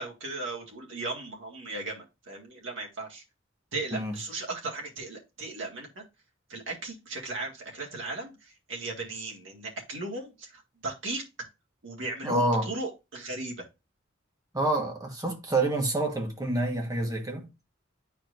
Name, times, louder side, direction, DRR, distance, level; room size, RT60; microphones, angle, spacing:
voice 1, 0.0-3.2 3.7-6.0 6.5-11.2 11.8-13.6, right 2 dB, 80° right, 1.9 m, -37 dB
voice 2, 12.2-12.7 14.5-17.5, right 2 dB, 20° right, 1.3 m, -27 dB
9.9 x 4.4 x 2.6 m
head